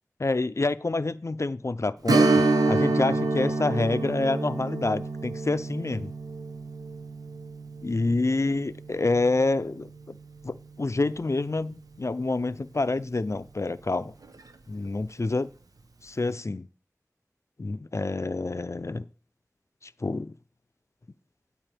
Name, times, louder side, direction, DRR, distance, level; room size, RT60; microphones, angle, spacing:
voice 1, 0.2-6.1 7.8-10.1 10.4-14.1 14.7-15.5 16.0-16.7 17.6-19.0 19.8-20.3, left 3 dB, 50° left, 0.5 m, -27 dB
Strum, 2.1-11.3 11.6-11.7 14.2-14.4 14.9-15.0, right 3 dB, 85° right, 0.9 m, -28 dB
16.5 x 8.9 x 3.4 m
wide cardioid pair, 45°, 6 cm